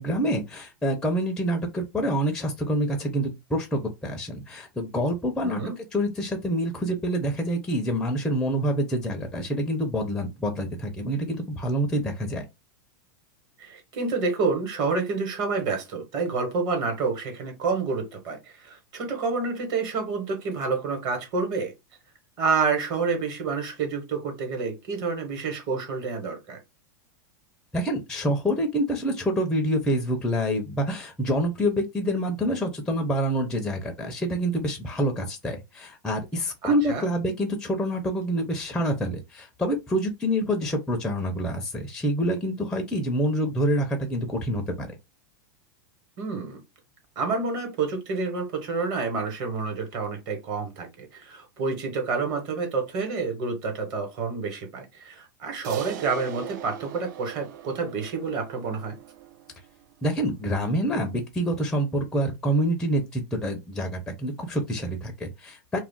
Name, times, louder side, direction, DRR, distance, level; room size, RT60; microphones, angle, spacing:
voice 1, 0.0-5.6 5.9-12.4 27.7-45.0 60.0-65.8, equal, 5° left, 0.4 m, -27 dB
voice 2, 5.4-5.7 13.6-21.7 22.4-26.6 36.6-37.1 46.2-46.6 47.2-59.0, right 4 dB, 40° right, 1.1 m, -28 dB
Crash cymbal, 55.6-60.2, right 12 dB, 65° right, 0.4 m, -38 dB
2.3 x 2.0 x 3.6 m
supercardioid pair, 140°, 11 cm